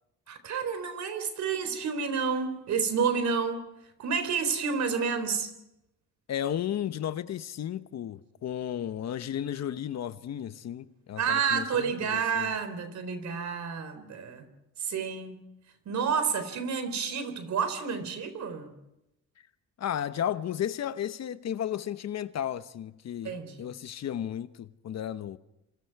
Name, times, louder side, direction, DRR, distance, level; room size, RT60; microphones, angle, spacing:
voice 1, 0.3-3.7 4.0-5.5 11.2-14.5 14.8-15.4 15.9-18.7 23.2-23.6, right 6 dB, 65° right, 4.0 m, -30 dB
voice 2, 6.3-12.5 19.8-25.4, left 10 dB, 60° left, 1.1 m, -34 dB
27.0 x 27.0 x 4.8 m
cardioid pair, 90°, 30 cm